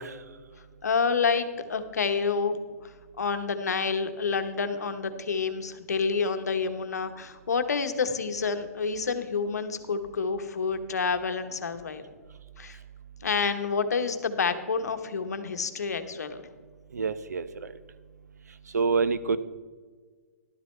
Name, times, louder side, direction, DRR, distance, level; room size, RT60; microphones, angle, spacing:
voice 1, 0.8-2.6 2.8-12.0 12.6-12.8 13.2-16.4, left 5 dB, 85° left, 8 dB, 1.1 m, -28 dB
voice 2, 16.9-17.4 18.7-19.4, right 5 dB, 85° right, 13 dB, 0.7 m, -25 dB
13.0 x 12.0 x 3.3 m, 1.5 s
hypercardioid pair, 130°, 9 cm